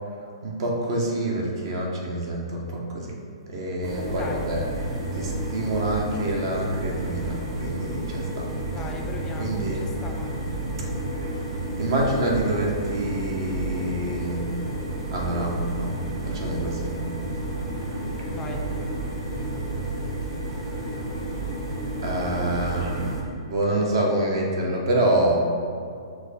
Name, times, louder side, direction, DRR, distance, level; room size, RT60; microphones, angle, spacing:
voice 1, 0.4-3.2 3.5-4.6 5.1-8.5 9.4-9.9 11.1-11.3 11.8-14.5 15.1-17.0 20.7-20.8 22.0-25.4, right 1 dB, 55° right, -1 dB, 1.0 m, -27 dB
sound 1, 3.8-23.2, right 2 dB, 40° right, 1.2 m, -31 dB
voice 2, 4.1-4.5 8.6-10.4 18.3-18.7, left 2 dB, 20° left, 2 dB, 0.4 m, -38 dB
6.1 x 2.4 x 3.5 m, 2.3 s
hypercardioid pair, 125°, 3 cm